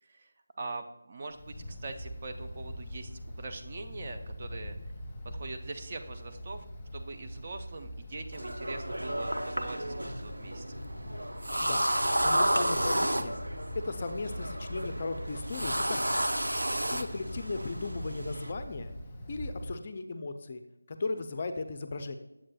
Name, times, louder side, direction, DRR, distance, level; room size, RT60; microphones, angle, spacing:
voice 1, 0.0-4.8 5.2-6.6 6.9-10.8, right 3 dB, 30° right, 5 dB, 0.4 m, -42 dB
Wind, 1.3-19.7, equal, 10° left, 1.0 m, -42 dB
sound 1, 8.3-18.5, right 1 dB, 75° right, 0.6 m, -32 dB
voice 2, 12.2-13.4 13.7-16.3 16.9-18.9 19.3-20.6 20.9-22.2, left 3 dB, 30° left, 8 dB, 0.4 m, -36 dB
8.5 x 7.4 x 2.3 m, 0.93 s
figure-of-eight pair, 165°, 0 cm